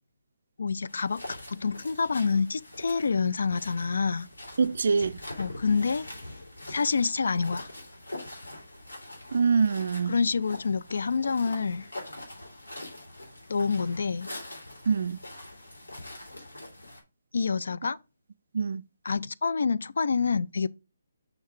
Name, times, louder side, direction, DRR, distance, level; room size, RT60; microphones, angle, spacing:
voice 1, 0.6-1.2 1.5-4.3 5.4-6.0 6.7-7.7 10.1-11.9 13.5-14.3 17.3-18.0 19.0-20.7, left 5 dB, 70° left, 0.4 m, -27 dB
sound 1, 0.9-17.0, left 1 dB, 85° left, 3.2 m, -44 dB
voice 2, 4.6-5.2 9.3-10.2 14.9-15.2 18.5-18.8, right 5 dB, 65° right, 0.3 m, -24 dB
6.3 x 3.6 x 4.6 m
figure-of-eight pair, 145°, 0 cm